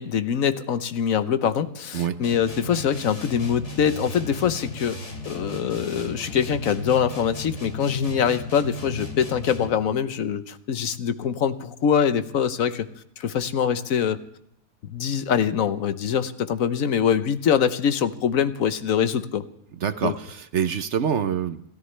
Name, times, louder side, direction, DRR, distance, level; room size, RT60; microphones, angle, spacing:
voice 1, 0.0-5.0 5.2-12.9 13.2-14.2 14.9-19.4 20.0-20.1, left 8 dB, 60° left, 12 dB, 1.2 m, -24 dB
sound 1, 2.2-9.9, left 2 dB, 45° left, 2.8 m, -35 dB
voice 2, 19.8-21.6, right 8 dB, 55° right, 11 dB, 0.9 m, -25 dB
28.0 x 13.5 x 3.3 m, 0.75 s
omnidirectional pair, 1.7 m